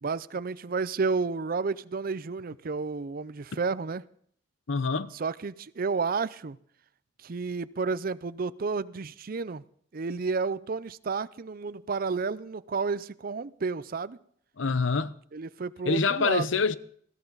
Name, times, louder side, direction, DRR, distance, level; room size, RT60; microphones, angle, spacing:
voice 1, 0.0-4.0 5.1-6.6 7.2-9.7 9.9-14.2 15.3-16.6, right 4 dB, 50° right, 0.5 m, -31 dB
voice 2, 4.7-5.1 14.6-15.1 15.9-16.8, left 4 dB, 90° left, 0.8 m, -25 dB
20.5 x 14.5 x 4.0 m
head